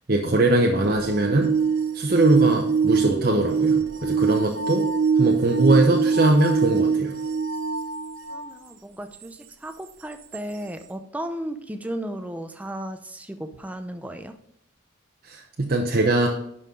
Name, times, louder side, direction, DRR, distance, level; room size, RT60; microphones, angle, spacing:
voice 1, 0.1-1.5 1.9-4.8 5.2-7.1 15.3-16.3, right 2 dB, 45° right, 0 dB, 0.8 m, -21 dB
sound 1, 0.9-8.5 9.2-9.3 10.3-10.4, right 5 dB, 75° right, 0.6 m, -23 dB
voice 2, 8.3-14.4, right 1 dB, 5° right, 8 dB, 0.5 m, -35 dB
11.0 x 5.5 x 3.8 m, 0.72 s
head